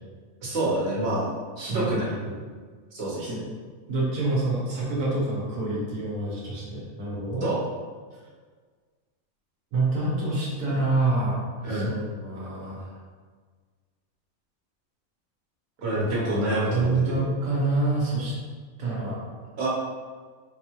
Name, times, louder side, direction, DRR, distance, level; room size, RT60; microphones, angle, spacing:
voice 1, 0.4-1.3 1.6-2.1 2.9-3.3 7.4-7.6 11.6-11.9 15.8-17.3 19.6-19.7, right 1 dB, 50° right, -6 dB, 1.2 m, -27 dB
voice 2, 1.7-2.3 3.2-3.5 3.9-7.4 9.7-12.9 15.9-18.3 18.8-19.2, right 2 dB, 70° right, -5 dB, 1.2 m, -27 dB
3.9 x 2.3 x 3.0 m, 1.5 s
omnidirectional pair, 1.5 m